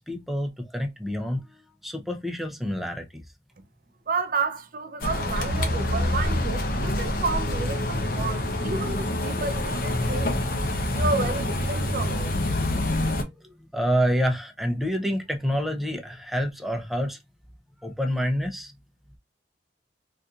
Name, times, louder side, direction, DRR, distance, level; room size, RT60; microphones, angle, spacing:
voice 1, 0.0-1.4 1.8-3.2 13.2-17.2 17.8-18.7, equal, ahead, 0.5 m, -28 dB
voice 2, 4.1-10.4 10.9-12.3, right 4 dB, 55° right, 0.6 m, -31 dB
sound 1, 5.0-13.2, left 1 dB, 55° left, 0.7 m, -26 dB
4.0 x 2.6 x 2.4 m
head